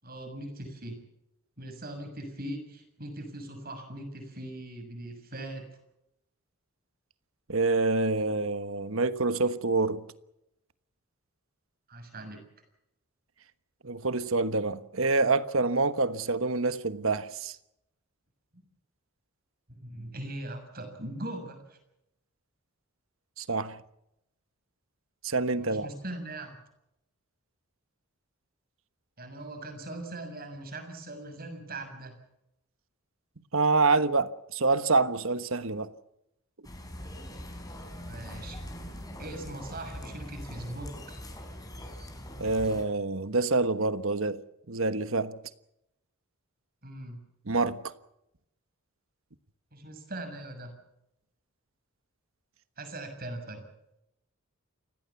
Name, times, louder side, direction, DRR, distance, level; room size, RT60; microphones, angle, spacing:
voice 1, 0.0-1.0 1.6-5.8 11.9-12.4 18.5-18.6 19.7-21.8 25.5-26.6 29.2-32.2 38.1-38.6 39.2-41.2 46.8-47.2 49.7-50.7 52.8-53.7, right 1 dB, 45° right, 6.6 m, -40 dB
voice 2, 7.5-10.0 13.8-17.6 23.4-23.8 25.2-25.9 33.5-35.9 42.4-44.4 44.7-45.4 47.5-47.9, right 3 dB, 65° right, 1.3 m, -27 dB
sound 1, 36.6-42.8, equal, 15° left, 5.1 m, -42 dB
29.5 x 16.5 x 7.2 m
head